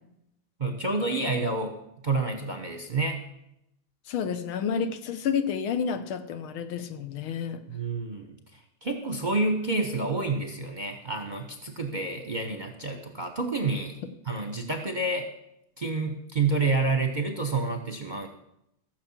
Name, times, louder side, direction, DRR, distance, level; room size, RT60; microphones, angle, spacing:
voice 1, 0.6-1.7 2.0-3.2 7.7-8.3 8.8-14.0 14.3-15.3 15.8-18.3, right 3 dB, 35° right, 5 dB, 0.8 m, -28 dB
voice 2, 4.1-7.6, left 7 dB, 85° left, 9 dB, 1.8 m, -30 dB
15.0 x 6.8 x 7.3 m, 0.81 s
omnidirectional pair, 2.2 m